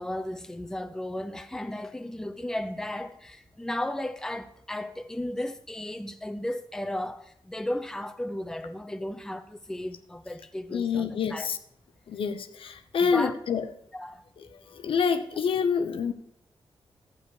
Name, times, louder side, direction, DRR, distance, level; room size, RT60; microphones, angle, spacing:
voice 1, 0.0-11.5 13.0-13.3 13.9-14.2, left 1 dB, 5° left, 0.5 m, -34 dB
voice 2, 10.7-11.6 12.1-13.7 14.7-16.1, left 6 dB, 70° left, 0.8 m, -27 dB
12.0 x 8.6 x 4.8 m
cardioid pair, 95°, 9 cm